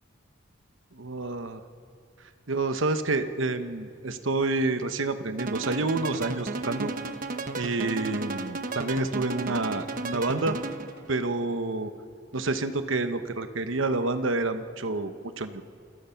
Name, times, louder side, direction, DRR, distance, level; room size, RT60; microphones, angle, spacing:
voice 1, 0.9-1.6 2.5-6.9 7.5-10.6 11.1-11.9 12.3-15.6, right 3 dB, 75° right, 9 dB, 1.1 m, -28 dB
sound 1, 5.4-11.0, right 3 dB, 45° right, 1.0 m, -34 dB
28.0 x 19.5 x 5.8 m, 2.5 s
head